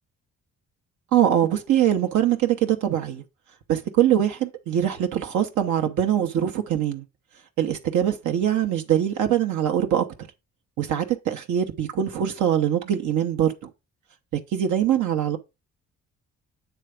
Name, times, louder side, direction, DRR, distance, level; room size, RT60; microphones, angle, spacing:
voice 1, 1.1-3.2 3.7-7.0 7.6-10.1 10.8-13.7 14.5-15.4, right 10 dB, 75° right, 0.9 m, -23 dB
8.2 x 3.4 x 4.9 m
cardioid pair, 90°, 30 cm